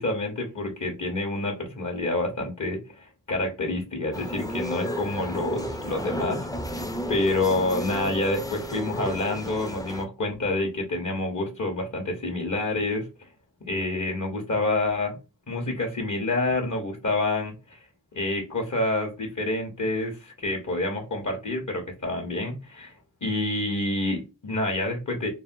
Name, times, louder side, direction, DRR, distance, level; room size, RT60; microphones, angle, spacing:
voice 1, 0.0-13.1 13.7-15.1 15.5-17.8 18.1-22.9 23.2-25.3, left 2 dB, 55° left, 1.0 m, -28 dB
sound 1, 4.1-10.0, equal, 10° left, 0.4 m, -33 dB
3.3 x 2.2 x 2.5 m
wide cardioid pair, 55°, 36 cm